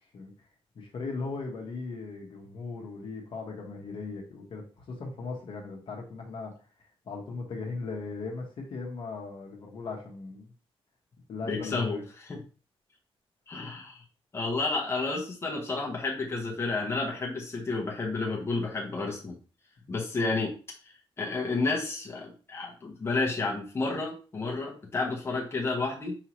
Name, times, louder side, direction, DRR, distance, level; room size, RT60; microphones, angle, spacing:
voice 1, 0.7-6.5 7.1-10.5 11.3-12.0, left 3 dB, 55° left, 1 dB, 1.1 m, -38 dB
voice 2, 11.5-12.4 13.5-14.0 14.3-19.4 19.9-20.5 21.2-26.1, left 3 dB, 25° left, -2 dB, 0.9 m, -31 dB
4.9 x 2.8 x 3.0 m, 0.37 s
wide cardioid pair, 160°, 10 cm